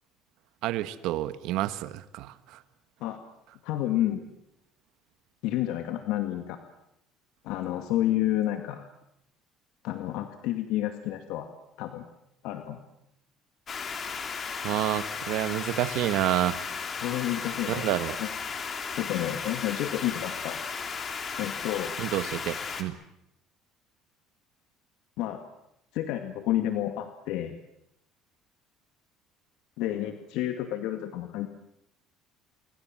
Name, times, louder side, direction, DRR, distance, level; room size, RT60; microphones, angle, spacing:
voice 1, 0.6-2.6 14.6-16.6 17.7-18.2 22.0-23.0, right 14 dB, 70° right, 12 dB, 1.6 m, -29 dB
voice 2, 3.6-4.3 5.4-6.6 7.4-8.8 9.8-11.5 11.8-12.0 12.4-12.8 17.0-17.9 18.2-18.3 18.6-20.6 21.4-21.9 25.2-25.4 25.9-27.5 29.8-31.5, left 13 dB, 75° left, 6 dB, 2.3 m, -30 dB
sound 1, 13.7-22.8, left 5 dB, 30° left, 3.1 m, -35 dB
28.0 x 24.5 x 7.7 m, 0.80 s
cardioid pair, 140°, 0 cm